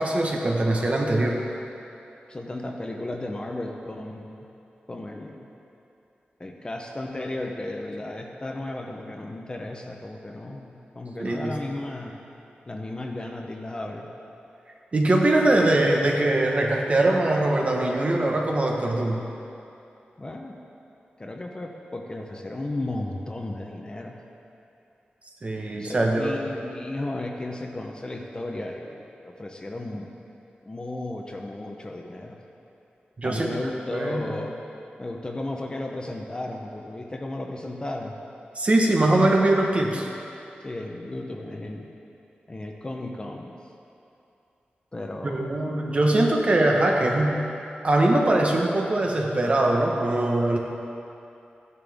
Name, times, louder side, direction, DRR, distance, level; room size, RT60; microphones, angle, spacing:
voice 1, 0.0-1.4 11.2-11.6 14.9-19.2 25.4-26.4 33.2-33.5 33.9-34.3 38.5-40.1 45.2-47.4 47.8-50.6, right 1 dB, 40° right, 0 dB, 1.2 m, -22 dB
voice 2, 2.3-4.5 4.9-5.5 6.4-12.1 12.7-14.1 20.2-20.5 21.2-24.2 25.7-30.1 30.6-32.4 33.2-34.6 35.0-38.1 40.6-41.9 42.5-43.6 44.9-45.5, left 2 dB, 25° left, 1 dB, 0.9 m, -34 dB
14.5 x 11.0 x 3.6 m, 2.8 s
wide cardioid pair, 130°, 3 cm